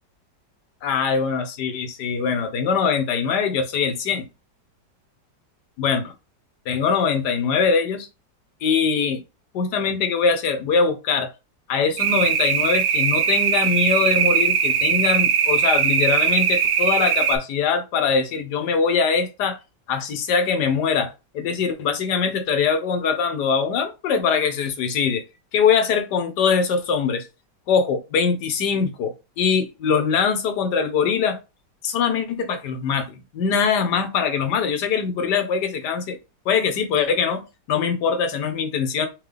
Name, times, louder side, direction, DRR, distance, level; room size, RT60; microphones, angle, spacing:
voice 1, 0.8-4.2 5.8-6.1 6.7-8.1 8.6-9.2 9.5-11.3 11.7-19.6 19.9-25.2 25.5-27.3 27.7-31.4 31.8-36.2 36.5-39.1, left 6 dB, 70° left, 1.4 m, -22 dB
sound 1, 12.0-17.4, right 7 dB, 70° right, 1.2 m, -20 dB
3.7 x 3.3 x 3.3 m
omnidirectional pair, 1.9 m